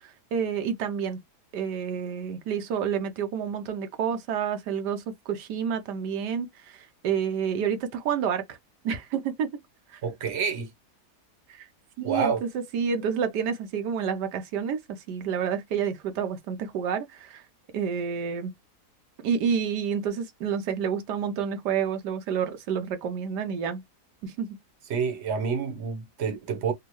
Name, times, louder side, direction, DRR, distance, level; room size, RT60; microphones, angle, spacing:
voice 1, 0.0-1.2 1.5-8.6 8.8-9.5 9.9-10.0 11.5-11.7 12.0-12.3 12.7-17.4 17.7-18.5 19.2-23.8 24.2-24.6, right 7 dB, 85° right, 1.3 m, -29 dB
voice 2, 10.0-10.7 12.0-12.4 24.9-26.7, right 6 dB, 50° right, 1.0 m, -28 dB
3.5 x 2.4 x 3.1 m
omnidirectional pair, 1.8 m